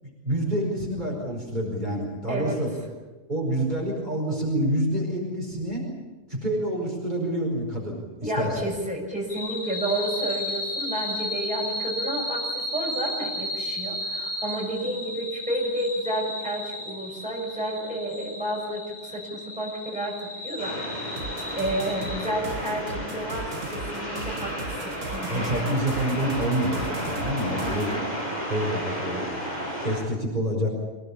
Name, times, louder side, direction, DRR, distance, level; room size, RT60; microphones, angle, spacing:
voice 1, 0.0-2.7 3.3-5.8 6.3-8.7 25.3-27.9 28.3-29.3 29.8-30.7, right 1 dB, 35° right, -2 dB, 5.3 m, -27 dB
voice 2, 2.3-2.6 8.2-20.8 21.5-25.5 27.6-28.0, right 1 dB, 5° right, -2 dB, 6.8 m, -31 dB
sound 1, 9.3-22.3, left 1 dB, 80° left, 7.8 m, -34 dB
sound 2, 20.6-30.0, equal, 35° left, 8.0 m, -32 dB
sound 3, 21.2-27.9, right 4 dB, 75° right, 1.6 m, -39 dB
25.5 x 18.0 x 8.7 m, 1.2 s
omnidirectional pair, 1.3 m